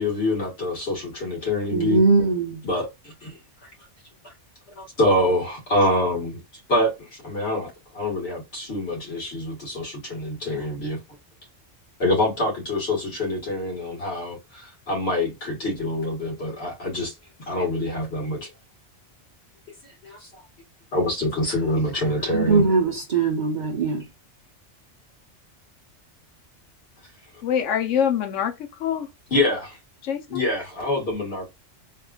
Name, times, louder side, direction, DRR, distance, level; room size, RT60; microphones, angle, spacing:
voice 1, 0.0-2.0 2.6-3.7 4.7-11.0 12.0-17.2 17.5-18.5 20.0-20.3 20.9-22.6 27.0-27.1 29.3-29.8 30.3-31.5, left 1 dB, 60° left, 1.8 m, -26 dB
voice 2, 1.7-2.6 22.3-24.1, right 4 dB, 45° right, 0.7 m, -21 dB
voice 3, 27.4-29.1 30.0-30.4, left 8 dB, 85° left, 1.0 m, -25 dB
3.5 x 2.3 x 2.3 m
omnidirectional pair, 1.2 m